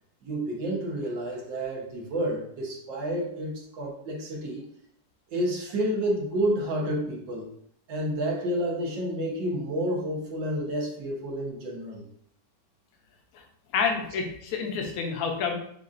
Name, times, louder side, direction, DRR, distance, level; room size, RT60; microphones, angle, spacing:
voice 1, 0.2-4.6 5.3-7.5 7.9-12.0, right 1 dB, 80° right, -2 dB, 1.7 m, -30 dB
voice 2, 13.7-15.5, left 5 dB, 60° left, 2 dB, 1.1 m, -28 dB
6.7 x 2.5 x 2.5 m, 0.67 s
omnidirectional pair, 2.0 m